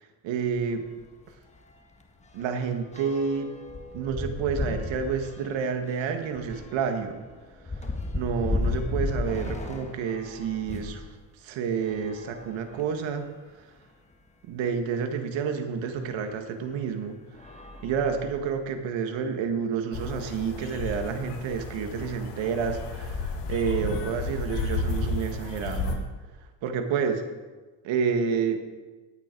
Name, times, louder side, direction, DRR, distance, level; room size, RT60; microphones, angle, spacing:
voice 1, 0.2-0.8 2.3-3.5 3.9-7.2 7.8-7.9 8.1-11.0 11.4-13.3 14.5-17.2 17.8-26.0 26.6-27.2 27.8-28.6, right 6 dB, 75° right, 6 dB, 1.9 m, -29 dB
sound 1, 0.6-0.8 1.1-1.2 1.6-11.0 11.8-13.1 13.8-13.9 14.1-14.2 15.9-16.1 16.7-16.9 17.3-18.6, left 2 dB, 15° left, 1.4 m, -35 dB
sound 2, 19.9-26.0, left 3 dB, 65° left, 2.2 m, -32 dB
17.5 x 9.5 x 4.6 m, 1.3 s
cardioid pair, 140°, 45 cm